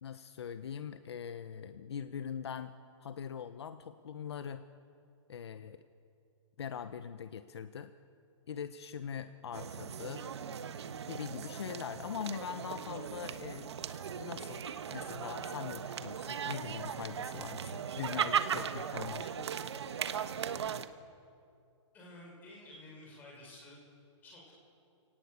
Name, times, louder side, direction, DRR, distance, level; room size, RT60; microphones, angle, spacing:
voice 1, 0.0-2.7 3.0-4.6 5.3-5.8 6.6-7.9 8.5-10.3 11.1-13.7 14.2-19.5, left 7 dB, 60° left, 10 dB, 1.0 m, -42 dB
sound 1, 9.5-20.9, right 7 dB, 60° right, 1.3 m, -38 dB
voice 2, 21.9-23.8 24.2-24.5, left 1 dB, 10° left, -2 dB, 5.8 m, -52 dB
29.0 x 18.5 x 8.4 m, 2.4 s
hypercardioid pair, 175°, 16 cm